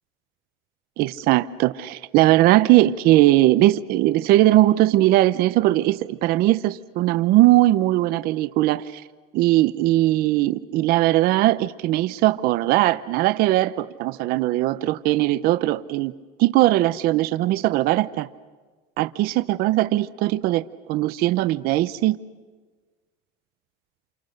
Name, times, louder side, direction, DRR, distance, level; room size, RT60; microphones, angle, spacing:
voice 1, 1.0-9.0 9.3-16.1 16.4-18.3 19.0-20.6 20.9-22.2, right 16 dB, 50° right, 0.7 m, -19 dB
28.5 x 27.5 x 6.6 m
cardioid pair, 160°, 20 cm